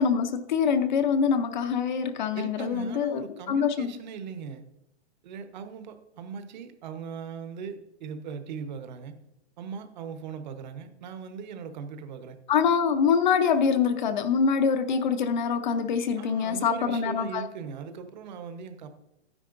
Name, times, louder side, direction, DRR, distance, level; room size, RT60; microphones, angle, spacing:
voice 1, 0.0-3.9 12.5-17.5, left 6 dB, 45° left, 9 dB, 0.7 m, -25 dB
voice 2, 2.3-4.6 5.2-9.2 9.6-12.4 16.2-18.9, right 6 dB, 40° right, 9 dB, 1.0 m, -39 dB
12.0 x 9.9 x 2.6 m, 0.90 s
hypercardioid pair, 165°, 33 cm